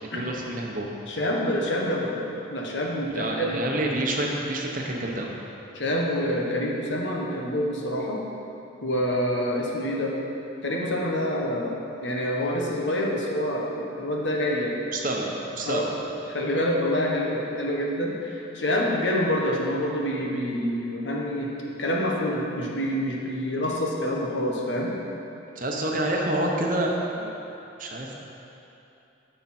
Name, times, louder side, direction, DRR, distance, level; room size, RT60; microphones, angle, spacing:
voice 1, 0.1-0.9 3.1-5.3 14.9-16.0 25.5-27.4 27.8-28.1, right 1 dB, 45° right, 0 dB, 1.0 m, -28 dB
voice 2, 1.1-2.2 2.5-3.6 5.7-8.2 8.8-10.1 10.6-11.7 12.0-14.7 15.6-15.9 16.3-21.5 21.8-25.0, equal, 65° left, -2 dB, 1.2 m, -27 dB
10.5 x 6.8 x 4.4 m, 2.9 s
head